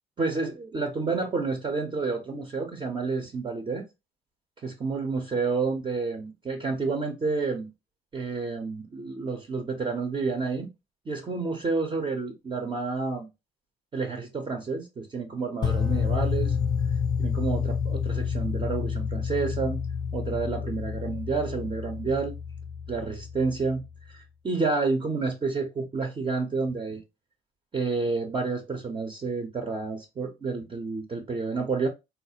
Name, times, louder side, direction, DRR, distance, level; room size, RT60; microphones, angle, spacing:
voice 1, 0.2-3.8 4.6-7.7 8.1-10.7 11.1-13.3 13.9-16.6 17.2-19.8 20.1-22.3 22.9-23.8 24.1-27.0 27.7-31.9, right 4 dB, 25° right, 0.7 m, -29 dB
sound 1, 15.6-23.8, left 6 dB, 25° left, 0.5 m, -29 dB
3.7 x 2.4 x 2.7 m
cardioid pair, 110°, 17 cm